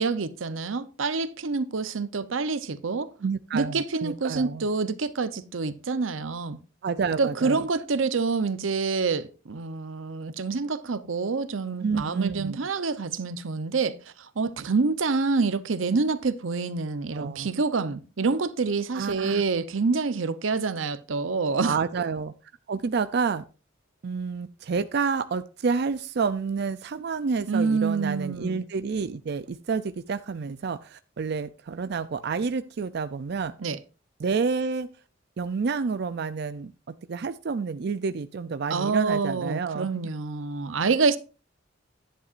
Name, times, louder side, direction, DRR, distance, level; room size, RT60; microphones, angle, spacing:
voice 1, 0.0-3.1 3.5-6.6 7.2-21.7 27.5-28.6 33.6-33.8 38.7-41.2, right 4 dB, 90° right, 0.8 m, -27 dB
voice 2, 3.2-4.7 6.8-7.7 11.8-12.6 17.1-17.5 18.9-19.4 21.6-22.3 22.7-23.4 24.0-33.5 34.2-34.9 35.4-39.9, right 5 dB, 55° right, 0.4 m, -29 dB
11.0 x 10.0 x 2.5 m
head